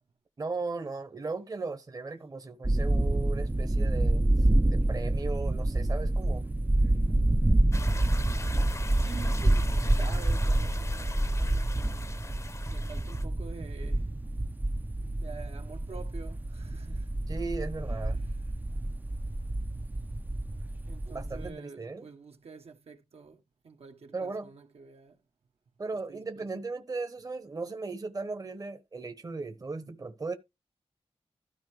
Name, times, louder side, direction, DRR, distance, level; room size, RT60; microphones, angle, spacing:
voice 1, 0.4-6.4 17.3-18.2 21.1-22.1 24.1-24.5 25.8-30.3, right 3 dB, 35° right, 1.0 m, -37 dB
sound 1, 2.6-21.5, right 1 dB, 15° right, 0.5 m, -28 dB
sound 2, 7.7-13.2, left 3 dB, 30° left, 0.7 m, -40 dB
voice 2, 9.0-11.8 12.7-14.1 15.2-17.1 17.9-18.4 20.9-25.2 26.1-26.5, right 5 dB, 75° right, 1.4 m, -48 dB
13.0 x 4.5 x 4.8 m
wide cardioid pair, 110°, 10 cm